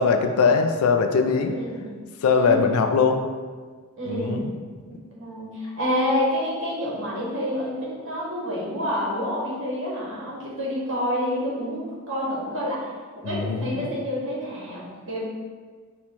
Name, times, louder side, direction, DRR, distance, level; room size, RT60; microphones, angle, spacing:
voice 1, 0.0-1.6 2.2-3.2 4.1-4.5 13.2-13.7, left 5 dB, 70° left, 6 dB, 0.4 m, -21 dB
voice 2, 1.4-1.9 2.4-2.7 4.0-4.5 4.9-12.9 13.1-15.2, equal, 60° right, -6 dB, 1.3 m, -28 dB
4.2 x 2.2 x 4.3 m, 1.5 s
head